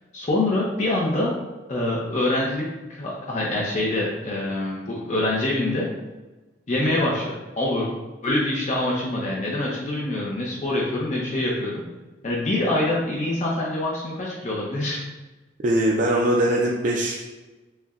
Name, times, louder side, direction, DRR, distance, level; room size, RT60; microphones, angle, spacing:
voice 1, 0.1-1.3 1.7-2.6 2.9-5.9 6.7-7.9 8.2-11.8 12.2-15.0, left 1 dB, 40° left, -4 dB, 0.6 m, -25 dB
voice 2, 15.6-17.2, right 1 dB, 45° right, -1 dB, 0.3 m, -21 dB
6.3 x 2.1 x 2.4 m, 1.2 s
head